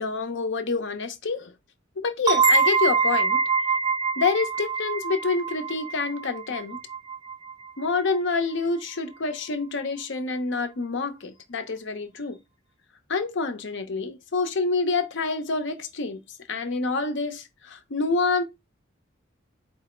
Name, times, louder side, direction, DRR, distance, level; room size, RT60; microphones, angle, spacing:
voice 1, 0.0-1.5 2.0-3.4 4.2-6.8 7.8-12.4 13.1-16.2 16.5-18.4, left 4 dB, 65° left, 0.7 m, -27 dB
sound 1, 2.3-7.7, right 4 dB, 20° right, 0.4 m, -24 dB
4.5 x 2.0 x 4.3 m
head